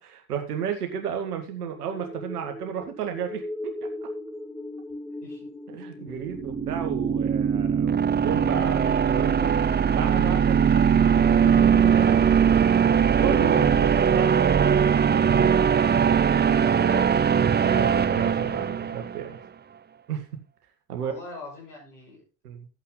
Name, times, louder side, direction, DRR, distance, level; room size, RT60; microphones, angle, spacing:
voice 1, 0.0-3.7 5.7-12.2 13.2-15.1 17.6-19.4 20.1-20.2 20.9-21.1 22.4-22.7, right 8 dB, 80° right, 5 dB, 1.9 m, -32 dB
sound 1, 1.5-15.8, left 1 dB, 5° left, 3.6 m, -41 dB
sound 2, 6.2-19.2, right 7 dB, 20° right, 0.7 m, -21 dB
voice 2, 16.6-17.5 21.0-22.2, left 3 dB, 85° left, -4 dB, 6.3 m, -42 dB
13.5 x 8.4 x 3.9 m, 0.31 s
figure-of-eight pair, 50°, 45 cm